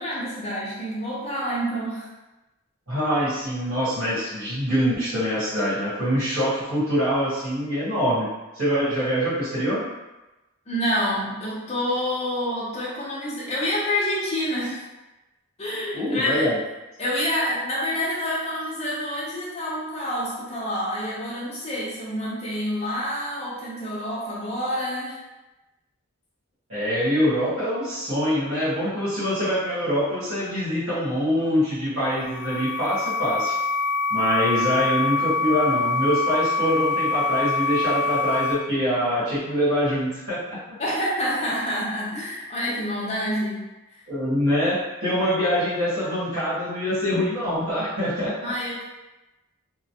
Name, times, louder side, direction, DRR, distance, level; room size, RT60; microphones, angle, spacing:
voice 1, 0.0-2.1 10.7-14.8 15.6-16.5 17.0-25.2 40.8-43.6 48.4-48.8, equal, 30° left, -6 dB, 0.7 m, -27 dB
voice 2, 2.9-8.3 8.5-9.9 15.9-16.6 26.7-33.6 34.1-40.6 44.1-48.4, equal, 75° right, -12 dB, 1.4 m, -24 dB
sound 1, 32.0-38.5, left 3 dB, 10° right, 0.6 m, -25 dB
3.0 x 2.1 x 2.9 m, 1.1 s
head